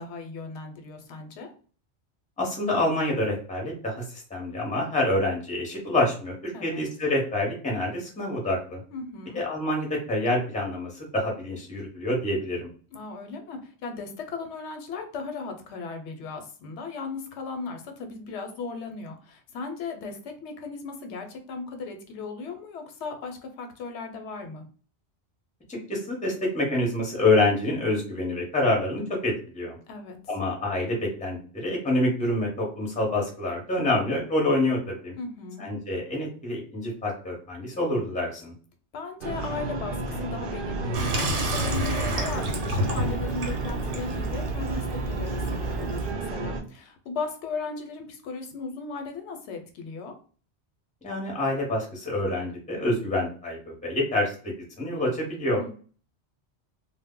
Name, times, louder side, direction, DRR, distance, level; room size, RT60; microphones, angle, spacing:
voice 1, 0.0-1.5 6.5-6.8 8.9-9.4 12.9-24.6 29.9-30.2 35.2-35.6 38.9-50.1 55.6-55.7, left 4 dB, 85° left, 5 dB, 0.9 m, -37 dB
voice 2, 2.4-8.8 9.3-12.7 25.7-29.8 30.3-35.1 35.6-38.5 51.0-55.6, left 1 dB, 10° left, -1 dB, 0.6 m, -27 dB
sound 1, 39.2-46.6, right 3 dB, 60° right, 0.7 m, -32 dB
Water tap faucet / Sink (filling or washing), 40.9-46.1, right 1 dB, 80° right, 0.9 m, -29 dB
2.0 x 2.0 x 3.5 m, 0.40 s
omnidirectional pair, 1.1 m